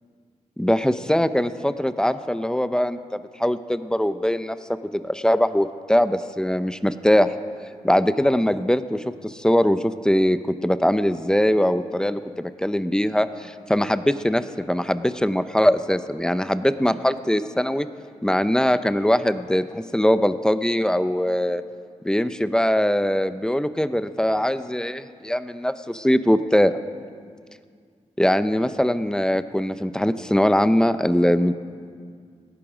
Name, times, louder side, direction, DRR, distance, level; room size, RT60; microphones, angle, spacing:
voice 1, 0.6-4.6 4.9-7.3 7.8-17.9 18.2-21.6 22.0-26.8 28.2-31.5, equal, 5° left, 12 dB, 0.6 m, -21 dB
18.0 x 13.0 x 5.0 m, 2.1 s
cardioid pair, 80°, 13 cm